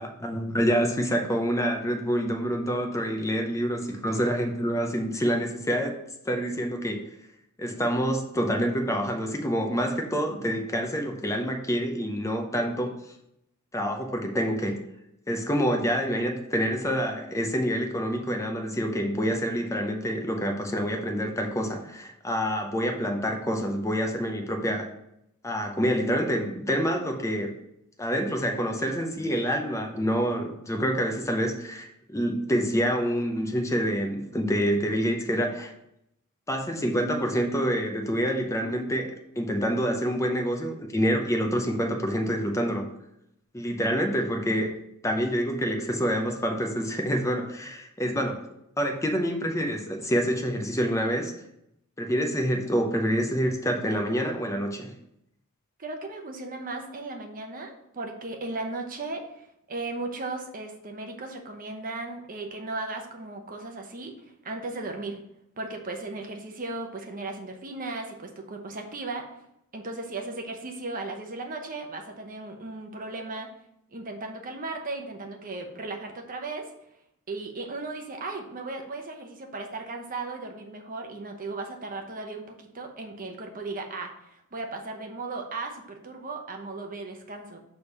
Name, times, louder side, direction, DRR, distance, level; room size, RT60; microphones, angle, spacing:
voice 1, 0.0-5.9 6.2-7.0 7.6-12.9 13.7-14.8 15.3-24.9 25.4-27.5 28.0-35.7 36.5-42.9 43.5-44.7 45.0-48.4 48.8-51.3 52.0-54.9, equal, 15° left, 3 dB, 0.7 m, -27 dB
voice 2, 55.8-65.2 65.6-69.3 69.7-73.5 73.9-76.7 77.3-87.6, right 3 dB, 40° right, 3 dB, 0.9 m, -36 dB
6.4 x 3.5 x 5.3 m, 0.79 s
head